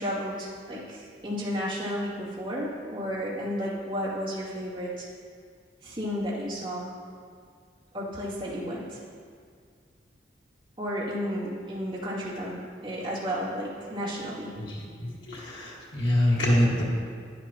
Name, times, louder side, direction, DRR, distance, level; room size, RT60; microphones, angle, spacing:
voice 1, 0.0-5.0 5.8-6.9 7.9-9.0 10.8-14.6, equal, 25° right, -9 dB, 2.4 m, -32 dB
voice 2, 15.0-16.8, left 1 dB, 75° left, -5 dB, 1.8 m, -25 dB
11.0 x 10.0 x 2.9 m, 2.1 s
head